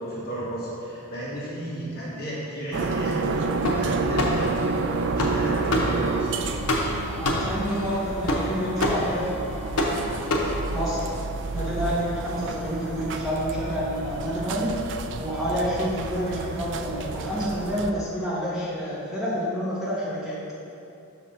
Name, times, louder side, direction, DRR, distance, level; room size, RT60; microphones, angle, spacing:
voice 1, 0.0-3.4 3.7-4.6 5.2-6.4, right 1 dB, 45° left, -7 dB, 1.6 m, -33 dB
sound 1, 2.7-17.9, right 3 dB, 55° right, 0.3 m, -30 dB
sound 2, 3.3-11.2, left 1 dB, 85° left, 0.9 m, -28 dB
voice 2, 7.1-9.6 9.9-10.3 10.7-11.0 11.5-14.8 15.2-20.4, equal, ahead, -11 dB, 1.6 m, -29 dB
5.9 x 4.2 x 5.6 m, 2.6 s
head